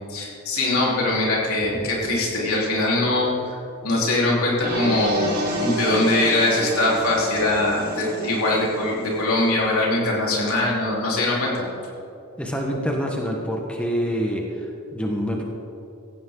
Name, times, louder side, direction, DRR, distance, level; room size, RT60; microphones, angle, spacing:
voice 1, 0.1-3.6 3.8-11.7, left 2 dB, 75° left, -4 dB, 4.0 m, -22 dB
sound 1, 4.6-9.5, right 1 dB, 40° right, 3.5 m, -29 dB
voice 2, 12.4-15.4, equal, 5° left, 0 dB, 1.3 m, -26 dB
17.0 x 16.0 x 3.9 m, 2.8 s
head